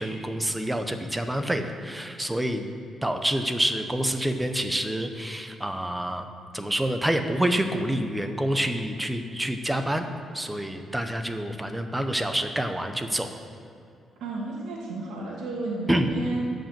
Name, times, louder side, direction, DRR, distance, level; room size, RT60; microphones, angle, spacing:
voice 1, 0.0-2.7 3.0-6.3 6.5-10.1 10.3-13.4 15.9-16.1, right 1 dB, 5° right, 6 dB, 0.6 m, -27 dB
voice 2, 14.2-16.4, right 2 dB, 90° right, -3 dB, 2.0 m, -31 dB
13.0 x 5.3 x 7.3 m, 2.5 s
cardioid pair, 175°, 0 cm